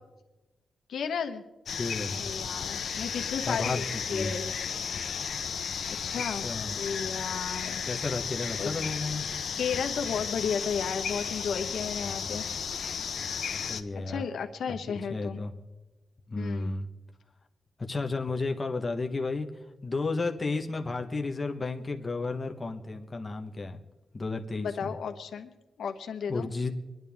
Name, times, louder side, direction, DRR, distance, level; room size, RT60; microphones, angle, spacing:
voice 1, 0.9-1.4 2.2-4.5 5.9-7.8 8.6-8.8 9.6-12.5 14.1-15.4 16.4-16.7 24.6-25.5 25.8-26.5, left 6 dB, 85° left, 5 dB, 1.2 m, -33 dB
sound 1, 1.7-13.8, left 7 dB, 65° left, 0.9 m, -34 dB
voice 2, 1.8-2.2 3.5-3.8 4.1-4.3 6.1-6.8 7.9-9.2 12.2-12.4 13.7-14.3 14.9-15.5 16.3-16.8 17.9-19.5 19.8-23.8 24.1-24.9 26.3-26.7, left 3 dB, 25° left, 3 dB, 1.2 m, -32 dB
25.0 x 11.0 x 3.6 m, 1.1 s
wide cardioid pair, 150°, 0 cm